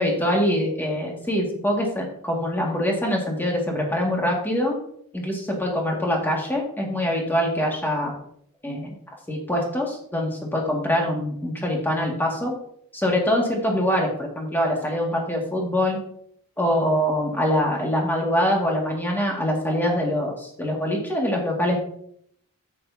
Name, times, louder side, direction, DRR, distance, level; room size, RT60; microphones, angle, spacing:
voice 1, 0.0-4.8 5.1-8.1 8.6-9.0 9.3-12.5 12.9-16.0 16.6-21.8, equal, 10° left, -1 dB, 2.0 m, -24 dB
10.0 x 8.5 x 2.8 m, 0.67 s
head